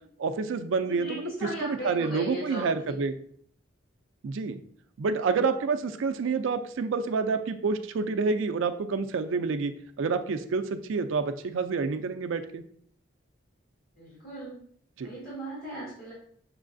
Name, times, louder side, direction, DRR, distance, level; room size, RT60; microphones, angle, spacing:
voice 1, 0.2-1.3 1.6-3.2 4.2-4.6 5.0-9.7 10.0-12.6 15.0-15.1, right 4 dB, 80° right, 9 dB, 0.4 m, -28 dB
voice 2, 0.8-3.0 14.0-14.6 15.0-16.1, equal, 50° left, -8 dB, 1.5 m, -38 dB
6.1 x 3.2 x 2.5 m, 0.62 s
head